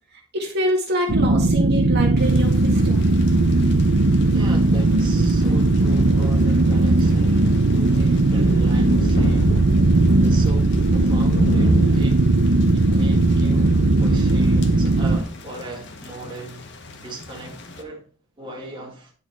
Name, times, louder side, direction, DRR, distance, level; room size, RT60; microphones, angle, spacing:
voice 1, 0.3-3.1, equal, 50° right, 1.8 m, -25 dB
sound 1, 1.1-15.2, right 2 dB, 65° right, 0.7 m, -18 dB
Thunder / Rain, 2.2-17.8, equal, 55° left, 1.2 m, -31 dB
voice 2, 4.3-9.6 10.2-12.2 12.7-16.7 17.0-18.0 18.4-19.1, right 2 dB, 25° right, 2.1 m, -38 dB
10.5 x 4.6 x 4.5 m
head